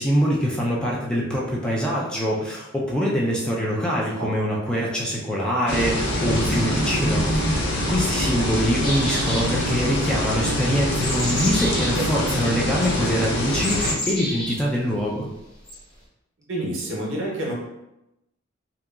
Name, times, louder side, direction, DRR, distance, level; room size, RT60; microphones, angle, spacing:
voice 1, 0.0-15.3, equal, 5° left, -4 dB, 0.3 m, -24 dB
sound 1, 5.7-13.9, left 1 dB, 55° left, 0.5 m, -24 dB
sound 2, 8.8-9.7 10.8-11.9 12.8-12.9 13.6-14.5 15.7-15.8, left 1 dB, 25° left, 0.8 m, -29 dB
voice 2, 16.5-17.5, right 1 dB, 65° right, -2 dB, 0.7 m, -28 dB
2.8 x 2.3 x 2.3 m, 0.90 s
head